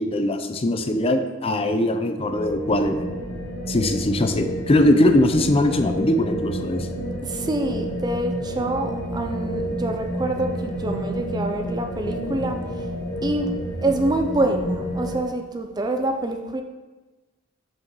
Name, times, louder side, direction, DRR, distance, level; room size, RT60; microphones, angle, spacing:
voice 1, 0.0-3.0 3.7-6.9, left 1 dB, 30° left, 7 dB, 0.5 m, -21 dB
sound 1, 2.3-15.2, equal, 70° left, 1.2 m, -30 dB
voice 2, 7.2-12.9 13.2-13.5 13.8-16.6, right 2 dB, 20° right, 5 dB, 0.5 m, -26 dB
6.0 x 4.7 x 6.1 m, 1.2 s
head